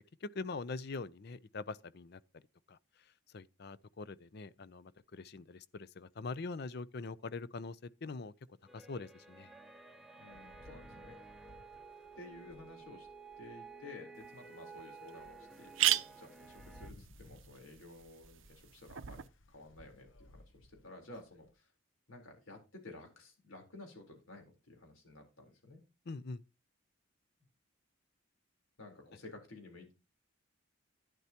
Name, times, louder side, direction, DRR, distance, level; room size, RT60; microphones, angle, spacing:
voice 1, 0.2-2.4 2.7-2.8 3.3-8.3 8.7-9.5 26.1-26.4, left 3 dB, 50° left, 0.5 m, -43 dB
sound 1, 8.7-16.9, right 4 dB, ahead, 0.8 m, -53 dB
voice 2, 10.2-11.2 12.2-13.1 13.4-21.7 22.1-25.8 28.8-29.9, left 2 dB, 85° left, 3.9 m, -53 dB
Rain, 10.3-13.8 14.3-14.4 14.9-21.5, left 1 dB, 70° left, 0.9 m, -60 dB
sound 2, 14.2-14.3 14.8-14.9 15.1-15.2 15.5-19.3, right 14 dB, 70° right, 0.5 m, -37 dB
11.5 x 10.5 x 2.9 m
head